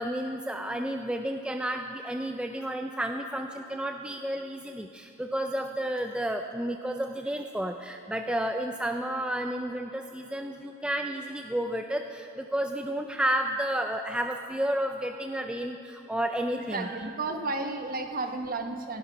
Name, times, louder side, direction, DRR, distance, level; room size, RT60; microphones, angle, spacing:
voice 1, 0.0-16.9 17.3-17.4, right 1 dB, 5° right, 4 dB, 0.3 m, -31 dB
voice 2, 16.5-19.0, right 3 dB, 40° right, 6 dB, 1.0 m, -33 dB
17.0 x 11.0 x 5.8 m, 2.6 s
head